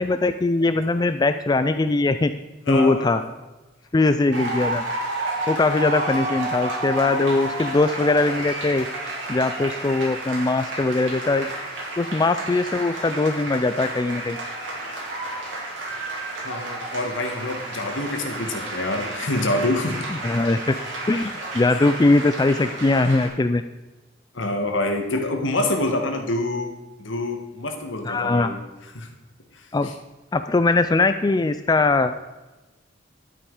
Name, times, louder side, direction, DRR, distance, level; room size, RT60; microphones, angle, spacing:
voice 1, 0.0-2.3 2.7-3.2 3.9-4.8 5.5-8.9 9.3-11.5 12.0-14.4 20.2-20.8 21.1-23.6 28.0-28.6 29.7-29.9 30.3-32.1, left 2 dB, 20° left, 10 dB, 0.4 m, -21 dB
voice 2, 2.7-3.3 16.4-20.1 24.3-26.7 27.0-28.6 28.9-29.1 29.5-29.9, left 2 dB, 85° left, 4 dB, 1.7 m, -26 dB
sound 1, 4.3-23.3, right 2 dB, 70° right, 4.0 m, -31 dB
11.5 x 8.8 x 4.9 m, 1.1 s
head